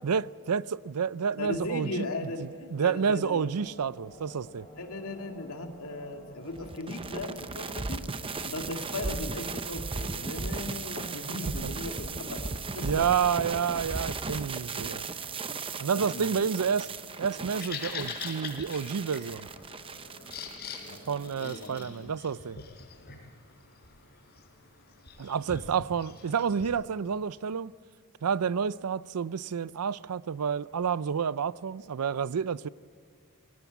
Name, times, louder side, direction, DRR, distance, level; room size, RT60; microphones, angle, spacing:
voice 1, 0.0-4.7 12.8-15.0 15.8-16.9 17.2-19.5 21.1-22.6 25.2-27.7 28.2-32.7, right 6 dB, 90° right, 0.5 m, -29 dB
voice 2, 1.4-3.5 4.8-8.0 8.4-13.0 15.9-16.4 20.7-22.1, left 2 dB, 70° left, 2.2 m, -38 dB
sound 1, 3.5-21.3, equal, 20° left, 5.3 m, -52 dB
sound 2, 6.5-21.8, right 4 dB, 25° right, 0.7 m, -37 dB
Bird vocalization bird call bird song, 17.3-26.7, left 5 dB, 45° left, 4.8 m, -44 dB
21.0 x 17.5 x 8.2 m
head